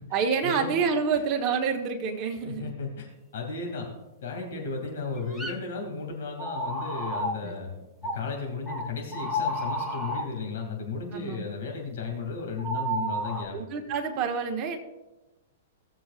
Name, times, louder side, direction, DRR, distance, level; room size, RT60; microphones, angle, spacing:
voice 1, 0.1-2.7 7.4-7.6 11.1-11.5 13.5-14.8, right 6 dB, 35° right, 3 dB, 1.2 m, -28 dB
voice 2, 2.4-3.1 3.3-3.9 4.2-7.7 8.0-13.6, left 4 dB, 70° left, 1 dB, 2.5 m, -34 dB
sound 1, 5.2-5.6 6.4-7.4 8.0-8.2 8.7-10.3 12.6-13.4, equal, 5° left, 1.0 m, -31 dB
16.5 x 7.3 x 2.5 m, 1.0 s
hypercardioid pair, 120°, 0 cm